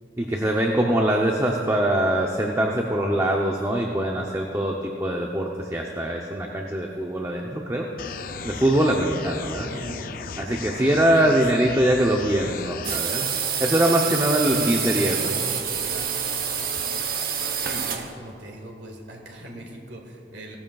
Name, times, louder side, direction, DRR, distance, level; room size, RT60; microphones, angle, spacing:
voice 1, 0.2-7.9 8.4-9.7 10.4-13.3 13.6-15.3, right 1 dB, 15° right, 0 dB, 0.6 m, -23 dB
sound 1, 8.0-13.0, left 5 dB, 50° left, 0.4 m, -36 dB
voice 2, 9.7-10.1 11.2-11.8 12.3-12.5 14.5-15.8 17.3-20.6, right 1 dB, 75° right, -1 dB, 1.8 m, -40 dB
sound 2, 12.8-18.1, right 7 dB, 50° right, 0.9 m, -27 dB
16.5 x 14.0 x 2.3 m, 2.9 s
head